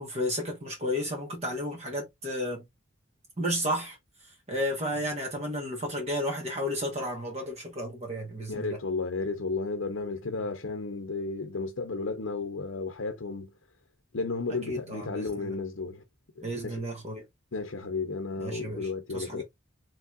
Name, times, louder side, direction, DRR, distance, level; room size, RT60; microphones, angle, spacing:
voice 1, 0.0-2.6 3.4-4.0 4.5-8.8 14.7-15.5 16.4-17.2 18.4-18.9 19.1-19.4, equal, 30° right, 1.4 m, -32 dB
voice 2, 8.5-13.5 14.1-16.0 16.4-16.8 17.5-19.4, left 3 dB, 70° left, 0.7 m, -33 dB
5.3 x 3.2 x 2.5 m
head